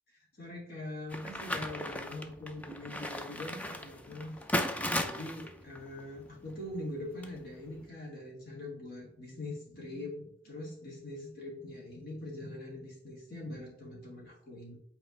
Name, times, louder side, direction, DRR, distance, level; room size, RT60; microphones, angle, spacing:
voice 1, 0.4-4.4 5.0-14.8, left 1 dB, 50° left, -3 dB, 2.5 m, -43 dB
sound 1, 1.1-7.9, left 1 dB, 10° left, 0.4 m, -37 dB
8.3 x 4.4 x 3.2 m, 0.71 s
head